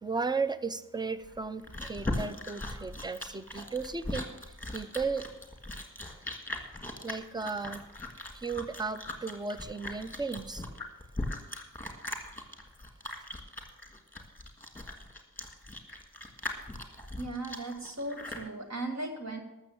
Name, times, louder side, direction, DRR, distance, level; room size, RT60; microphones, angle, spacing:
voice 1, 0.0-5.3 7.0-7.8 8.3-10.7, right 4 dB, 15° right, 13 dB, 0.5 m, -35 dB
Chewing mastication, 1.2-18.5, left 1 dB, 5° left, 1.7 m, -39 dB
voice 2, 17.2-19.4, right 2 dB, 50° right, 4 dB, 1.7 m, -37 dB
13.5 x 6.9 x 7.0 m, 0.97 s
wide cardioid pair, 140°, 34 cm